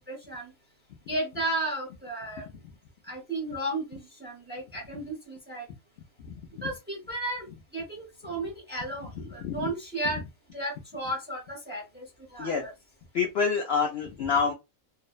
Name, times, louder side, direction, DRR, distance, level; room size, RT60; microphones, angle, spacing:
voice 1, 0.1-0.5 1.1-2.4 3.1-5.6 6.6-7.5 7.7-10.2 10.5-12.7, right 1 dB, 10° right, 0 dB, 0.7 m, -34 dB
voice 2, 13.1-14.5, left 5 dB, 65° left, 2 dB, 0.6 m, -27 dB
2.6 x 2.0 x 2.3 m, 0.24 s
omnidirectional pair, 1.4 m